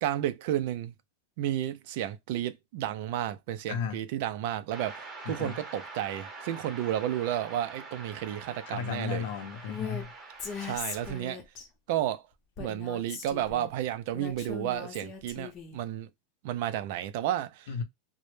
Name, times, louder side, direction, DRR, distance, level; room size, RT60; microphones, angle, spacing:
voice 1, 0.0-0.9 1.4-9.3 10.6-11.4 11.9-12.2 12.6-16.1 16.4-17.7, right 12 dB, 60° right, 0.3 m, -32 dB
sound 1, 4.7-11.2, right 3 dB, 20° right, 0.7 m, -45 dB
voice 2, 5.2-5.5 8.7-10.1 17.7-17.8, left 7 dB, 70° left, 0.6 m, -34 dB
Female speech woman speaking, 9.7-10.0 10.4-11.7 12.6-13.7 14.1-15.8, left 5 dB, 30° left, 0.6 m, -39 dB
2.0 x 2.0 x 3.0 m
supercardioid pair, 155°, 0 cm